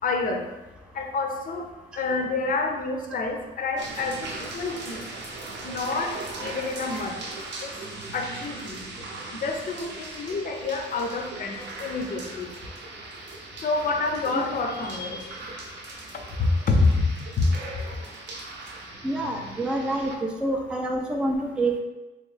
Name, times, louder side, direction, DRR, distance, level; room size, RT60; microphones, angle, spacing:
voice 1, 0.0-0.4 0.9-1.6 2.0-5.0 5.6-7.2 7.6-7.7 8.1-8.8 9.4-12.5 13.6-15.2 16.4-17.1 17.4-17.5, left 3 dB, 45° left, 3 dB, 0.6 m, -27 dB
sound 1, 3.8-20.2, right 2 dB, 65° right, 0.6 m, -39 dB
voice 2, 19.0-21.8, right 2 dB, 5° right, 1 dB, 0.4 m, -27 dB
3.0 x 2.9 x 3.2 m, 1.1 s
cardioid pair, 90°, 20 cm